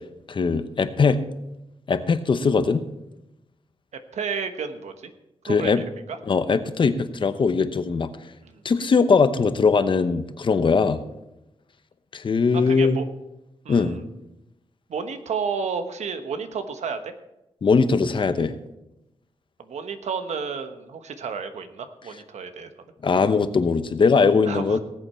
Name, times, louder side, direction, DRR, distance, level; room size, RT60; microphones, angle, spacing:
voice 1, 0.3-1.2 1.9-2.8 5.4-5.8 6.3-8.1 8.6-11.0 12.1-13.0 13.7-14.0 17.6-18.6 23.0-24.8, left 5 dB, 45° left, 11 dB, 0.9 m, -20 dB
voice 2, 4.1-5.1 5.5-5.8 6.1-6.2 8.4-8.6 12.5-13.1 13.6-14.0 14.9-17.1 19.7-22.7 24.5-24.8, right 6 dB, 85° right, 8 dB, 1.2 m, -31 dB
18.5 x 7.9 x 4.4 m, 0.92 s
wide cardioid pair, 105°, 11 cm